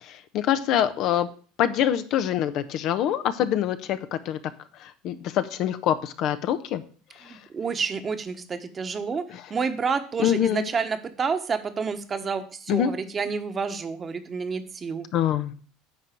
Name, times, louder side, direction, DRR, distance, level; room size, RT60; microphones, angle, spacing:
voice 1, 0.0-1.3 1.6-4.4 4.8-6.8 7.2-7.4 9.3-9.4 10.2-10.7 12.7-12.9 15.1-15.5, left 10 dB, 60° left, 10 dB, 0.8 m, -25 dB
voice 2, 7.2-15.1, right 5 dB, 30° right, 8 dB, 1.3 m, -29 dB
10.0 x 4.0 x 7.5 m, 0.42 s
hypercardioid pair, 85°, 0 cm